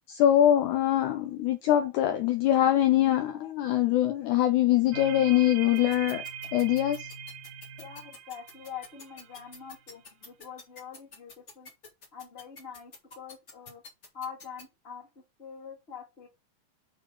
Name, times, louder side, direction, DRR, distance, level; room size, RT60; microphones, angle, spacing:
voice 1, 0.0-6.2 6.5-7.1, left 12 dB, 75° left, 1.9 m, -23 dB
sound 1, 4.9-9.8, right 7 dB, 70° right, 2.0 m, -42 dB
sound 2, 5.7-14.6, left 3 dB, 50° left, 0.8 m, -47 dB
voice 2, 7.7-11.7 12.1-13.8 14.1-15.1 15.4-16.3, left 7 dB, 25° left, 1.6 m, -44 dB
6.3 x 4.6 x 4.8 m
omnidirectional pair, 4.1 m